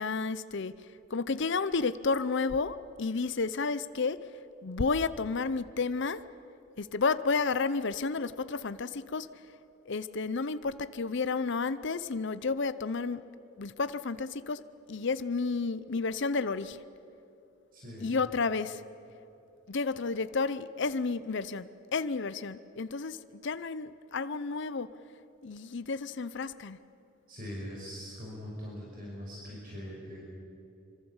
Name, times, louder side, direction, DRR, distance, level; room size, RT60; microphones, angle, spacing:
voice 1, 0.0-4.3 4.6-6.2 6.8-9.3 9.9-13.3 13.6-14.6 14.9-16.8 18.0-18.8 19.7-24.9 25.4-26.8, left 4 dB, 60° left, 14 dB, 0.7 m, -31 dB
voice 2, 17.7-18.1 27.3-30.2, equal, 45° right, -4 dB, 5.5 m, -42 dB
25.0 x 25.0 x 7.2 m, 2.8 s
head